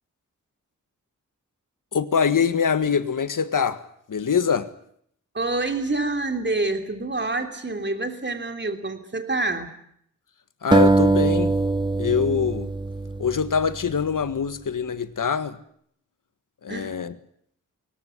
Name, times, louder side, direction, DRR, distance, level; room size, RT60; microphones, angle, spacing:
voice 1, 1.9-3.8 4.1-4.7 10.6-11.6 12.0-12.7 13.2-15.6 16.6-17.1, left 6 dB, 70° left, 1.7 m, -24 dB
voice 2, 5.3-9.7 16.7-16.9, right 2 dB, 35° right, 3.3 m, -27 dB
sound 1, 10.7-13.9, right 2 dB, 15° right, 0.9 m, -22 dB
22.5 x 18.5 x 9.8 m
cardioid pair, 65°, 33 cm